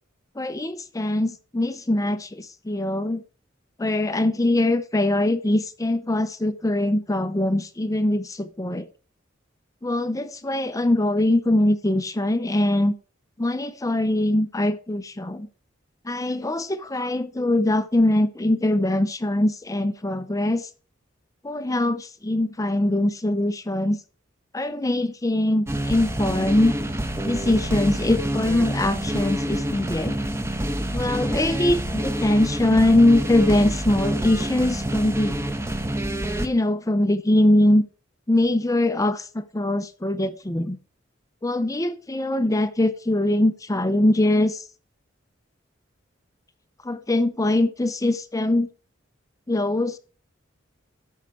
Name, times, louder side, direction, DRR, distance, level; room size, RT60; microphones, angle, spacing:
voice 1, 0.4-3.2 3.8-8.9 9.8-12.9 13.4-15.5 16.0-20.7 21.4-24.0 24.5-26.7 27.2-30.2 30.9-35.4 36.4-37.8 38.3-40.8 41.4-44.7 46.8-48.7 49.5-50.0, left 1 dB, 15° left, 0.6 m, -22 dB
sound 1, 25.7-36.5, right 1 dB, 15° right, 1.0 m, -27 dB
13.5 x 5.7 x 4.8 m
head